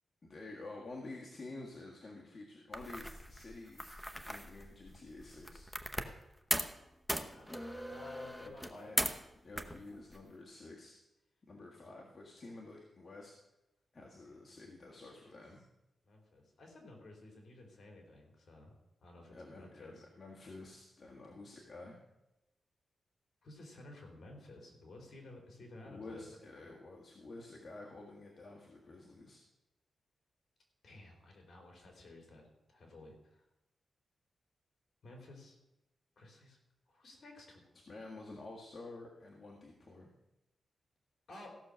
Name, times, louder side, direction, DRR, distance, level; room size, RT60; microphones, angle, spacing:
voice 1, 0.2-5.7 8.4-9.1 9.4-11.0 11.5-13.3 13.9-15.6 19.3-22.0 25.8-29.4 37.9-40.1, left 2 dB, 40° left, -2 dB, 1.7 m, -50 dB
sound 1, 2.7-6.2 6.5-6.8 7.1-9.3 9.6-10.2, equal, ahead, 0.9 m, -39 dB
voice 2, 7.1-8.9 9.9-10.0 14.2-14.4 14.9-15.4 16.0-18.7 19.0-20.1 23.4-26.2 26.6-26.7 30.8-33.4 35.0-35.6 36.2-36.6 36.9-37.6 41.3-41.6, left 2 dB, 55° left, 2 dB, 3.4 m, -54 dB
15.0 x 6.4 x 6.3 m, 0.95 s
wide cardioid pair, 120°, 0 cm